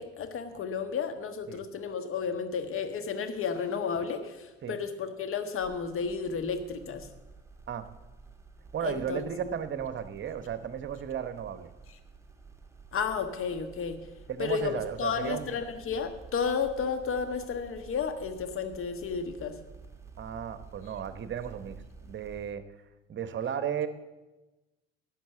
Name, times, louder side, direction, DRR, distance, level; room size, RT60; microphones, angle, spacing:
voice 1, 0.0-7.1 8.8-9.6 12.9-14.1 14.4-19.6, left 6 dB, 40° left, 8 dB, 1.5 m, -32 dB
sound 1, 5.6-22.5, right 4 dB, 10° right, 1.5 m, -51 dB
voice 2, 8.7-11.7 14.3-15.6 20.2-22.6 23.1-23.9, right 8 dB, 35° right, 12 dB, 1.0 m, -34 dB
12.0 x 7.6 x 7.1 m, 1.1 s
figure-of-eight pair, 55°, 31 cm